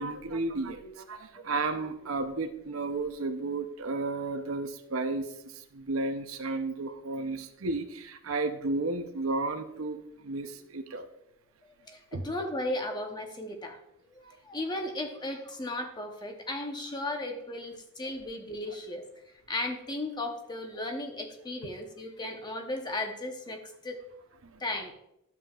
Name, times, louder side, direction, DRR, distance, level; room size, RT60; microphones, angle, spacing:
voice 1, 0.0-11.1 12.1-12.2 24.5-24.6, right 3 dB, 75° right, 8 dB, 0.7 m, -33 dB
voice 2, 11.9-13.8 14.1-19.0 19.5-24.0 24.6-24.9, left 1 dB, 20° left, 4 dB, 0.9 m, -35 dB
11.5 x 7.3 x 2.4 m, 0.81 s
head